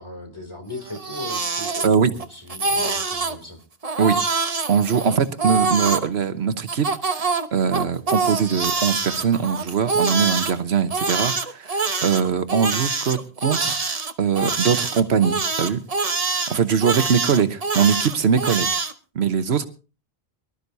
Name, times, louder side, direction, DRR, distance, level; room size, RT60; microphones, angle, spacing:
voice 1, 0.0-3.6, left 2 dB, 25° left, 5 dB, 3.0 m, -37 dB
Crying sobbing, 0.8-2.2 2.5-3.4 3.8-6.1 6.7-10.5 10.9-18.9, right 4 dB, 35° right, 1.1 m, -25 dB
voice 2, 1.8-2.1 4.0-4.2 4.7-13.8 14.2-15.8 16.5-18.7 19.1-19.7, right 6 dB, 80° right, 11 dB, 1.3 m, -21 dB
24.5 x 12.5 x 2.7 m, 0.34 s
omnidirectional pair, 1.1 m